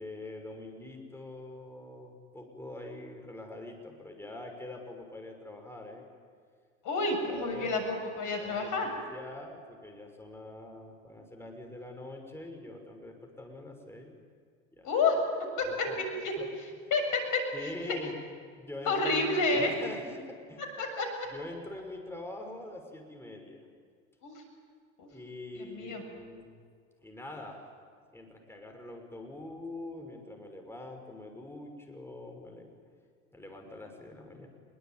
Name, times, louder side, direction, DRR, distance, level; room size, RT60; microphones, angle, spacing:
voice 1, 0.0-6.1 7.2-7.8 8.4-14.2 14.8-14.9 15.6-15.9 16.4-16.5 17.5-18.1 18.6-20.6 21.3-23.6 25.1-26.6 27.0-27.6 28.1-32.7 33.3-34.5, left 2 dB, 5° left, 2 dB, 6.6 m, -44 dB
voice 2, 6.8-8.9 14.8-15.2 15.6-15.9 16.2-16.3 16.9-18.0 18.9-19.7 20.8-21.3 24.2-24.4 25.0-25.1 25.5-26.0, left 3 dB, 55° left, 5 dB, 7.1 m, -29 dB
26.5 x 23.0 x 9.4 m, 2.1 s
hypercardioid pair, 65°, 36 cm